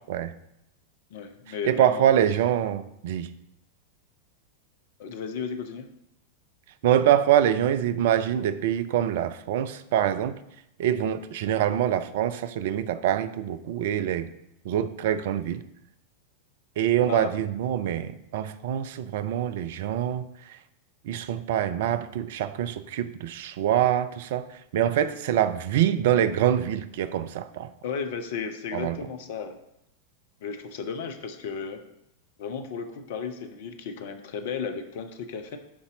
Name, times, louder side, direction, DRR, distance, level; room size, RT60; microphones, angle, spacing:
voice 1, 1.1-2.1 5.0-5.9 17.0-17.3 24.9-25.0 27.8-29.6 30.4-31.8 32.4-35.6, left 6 dB, 55° left, 8 dB, 0.8 m, -34 dB
voice 2, 1.6-3.3 6.8-10.4 10.8-14.3 14.6-15.6 16.8-20.3 21.1-24.4 24.7-27.7 28.7-29.0, right 10 dB, 55° right, 13 dB, 0.4 m, -25 dB
11.0 x 4.2 x 4.0 m, 0.80 s
figure-of-eight pair, 90°, 0 cm